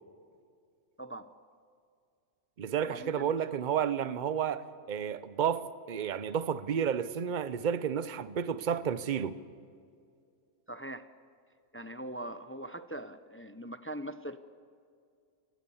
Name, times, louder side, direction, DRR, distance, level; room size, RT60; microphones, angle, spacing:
voice 1, 1.0-1.3 2.8-3.3 10.7-11.1 11.7-14.4, right 1 dB, 15° left, 0.5 m, -41 dB
voice 2, 2.6-9.4, right 8 dB, 45° right, 0.8 m, -31 dB
29.5 x 17.0 x 7.1 m
omnidirectional pair, 1.3 m